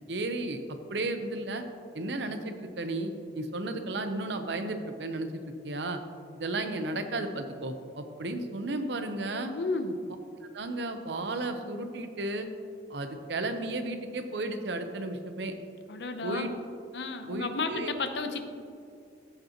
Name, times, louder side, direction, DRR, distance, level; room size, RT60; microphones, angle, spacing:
voice 1, 0.1-0.6 0.9-1.6 1.9-6.0 6.4-9.5 10.5-12.5 12.9-15.5 16.2-16.5 17.3-17.9, right 2 dB, 70° right, 7 dB, 0.7 m, -33 dB
voice 2, 9.5-10.0 15.9-16.5 16.9-18.4, left 3 dB, 70° left, 7 dB, 0.7 m, -32 dB
14.5 x 5.4 x 2.9 m, 2.4 s
head